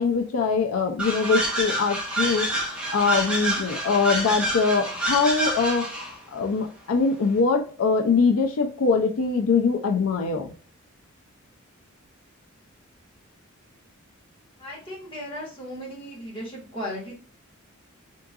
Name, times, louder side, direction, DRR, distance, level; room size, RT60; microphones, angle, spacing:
voice 1, 0.0-10.5, left 4 dB, 85° left, 3 dB, 0.5 m, -23 dB
sound 1, 1.0-6.2, right 1 dB, 5° right, 1.1 m, -27 dB
voice 2, 14.6-17.1, equal, 25° left, -5 dB, 1.8 m, -36 dB
3.7 x 3.7 x 2.3 m, 0.41 s
head